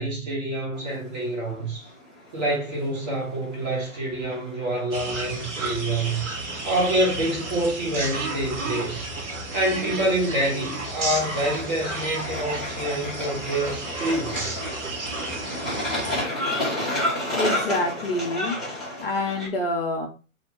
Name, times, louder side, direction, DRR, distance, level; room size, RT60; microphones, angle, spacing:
voice 1, 0.0-1.9 2.3-6.3 6.6-9.0 9.5-14.5, right 1 dB, 30° right, 1.3 m, -27 dB
sound 1, 0.7-19.5, left 1 dB, ahead, 0.6 m, -33 dB
sound 2, 4.9-16.2, right 2 dB, 55° right, 1.0 m, -32 dB
voice 2, 17.3-18.6 19.0-20.1, left 2 dB, 45° left, 0.7 m, -26 dB
2.7 x 2.2 x 3.7 m
figure-of-eight pair, 120°, 42 cm